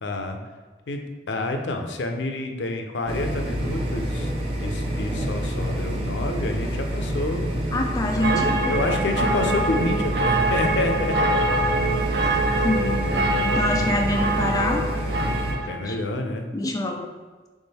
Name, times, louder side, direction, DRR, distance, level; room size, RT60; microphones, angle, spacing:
voice 1, 0.0-0.4 0.9-1.0 1.3-4.3 4.6-7.5 8.2-11.4 15.7-16.5, left 2 dB, 85° left, 4 dB, 0.5 m, -28 dB
sound 1, 3.1-15.5, equal, 35° right, 0.7 m, -27 dB
voice 2, 7.7-8.7 12.6-14.9 15.9-16.0 16.5-17.1, left 1 dB, 20° left, 2 dB, 0.3 m, -26 dB
sound 2, 8.2-15.8, right 2 dB, 75° right, 0.5 m, -25 dB
3.6 x 3.3 x 4.2 m, 1.3 s
head